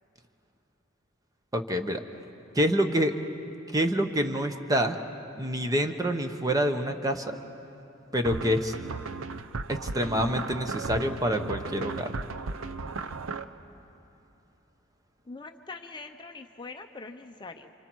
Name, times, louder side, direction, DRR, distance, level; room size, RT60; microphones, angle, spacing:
voice 1, 1.5-2.0 2.5-3.1 3.7-5.0 5.4-7.4 8.1-8.7 9.7-12.2, equal, 20° right, 6 dB, 0.9 m, -27 dB
sound 1, 8.2-13.4, right 4 dB, 85° right, 0.7 m, -36 dB
voice 2, 15.3-17.7, left 3 dB, 25° left, 6 dB, 0.6 m, -43 dB
29.0 x 26.5 x 4.6 m, 2.9 s
head